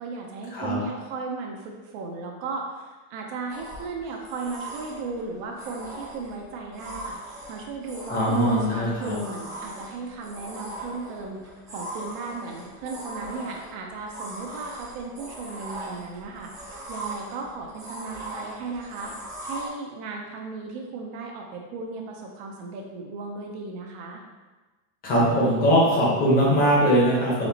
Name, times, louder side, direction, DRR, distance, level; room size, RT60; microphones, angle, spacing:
voice 1, 0.0-7.2 7.5-19.1 19.5-24.2, right 4 dB, 50° right, 0 dB, 0.6 m, -36 dB
sound 1, 3.5-19.7, right 1 dB, 10° right, 0.5 m, -40 dB
voice 2, 8.1-9.1 25.0-27.5, equal, 20° left, -5 dB, 0.9 m, -21 dB
4.3 x 4.0 x 2.8 m, 1.2 s
supercardioid pair, 175°, 42 cm